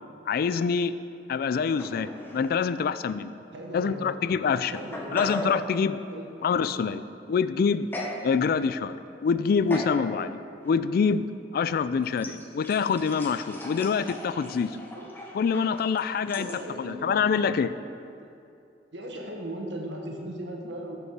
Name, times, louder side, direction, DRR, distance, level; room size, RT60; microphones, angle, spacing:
voice 1, 0.3-1.0 1.3-3.3 3.7-4.7 5.1-6.0 6.4-7.0 7.3-7.9 8.2-9.0 9.2-10.4 10.6-11.3 11.5-14.8 15.3-16.5 16.8-17.7, left 6 dB, 55° left, 14 dB, 0.3 m, -25 dB
sound 1, 1.8-2.5 2.8-2.9 3.8-3.9 4.5-5.6 7.9-8.2 8.7-9.1 9.7-10.0 10.6-10.8 12.2-16.6, left 1 dB, 10° left, 0.9 m, -38 dB
voice 2, 3.5-4.1 4.6-5.2 6.1-6.3 14.9-15.1 16.4-17.1 18.9-21.0, right 1 dB, 80° right, 1 dB, 1.2 m, -37 dB
12.5 x 5.3 x 4.7 m, 2.6 s
head